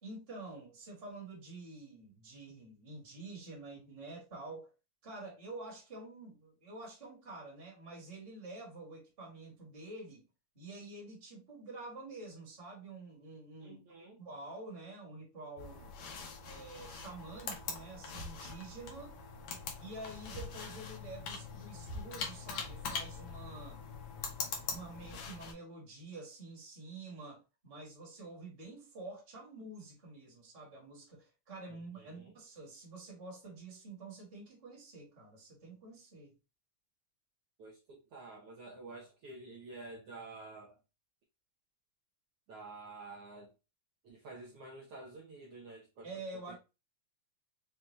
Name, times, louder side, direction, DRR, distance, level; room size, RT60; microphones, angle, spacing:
voice 1, 0.0-4.7 5.0-10.2 10.5-13.8 14.2-15.9 16.4-19.2 19.8-23.8 24.7-36.3 46.0-46.5, right 2 dB, 30° right, 1.1 m, -48 dB
voice 2, 13.6-14.2 31.7-32.3 37.6-40.8 42.5-43.5 44.0-46.5, right 3 dB, 85° right, 1.3 m, -50 dB
sound 1, 15.6-25.5, left 5 dB, 80° left, 1.2 m, -43 dB
5.6 x 2.3 x 3.1 m
omnidirectional pair, 3.9 m